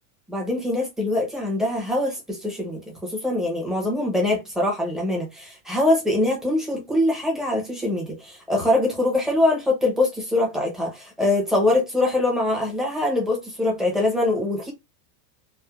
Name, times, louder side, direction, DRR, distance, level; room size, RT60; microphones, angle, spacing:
voice 1, 0.3-14.7, left 2 dB, ahead, 0.5 m, -23 dB
3.1 x 2.1 x 2.3 m
supercardioid pair, 150°, 47 cm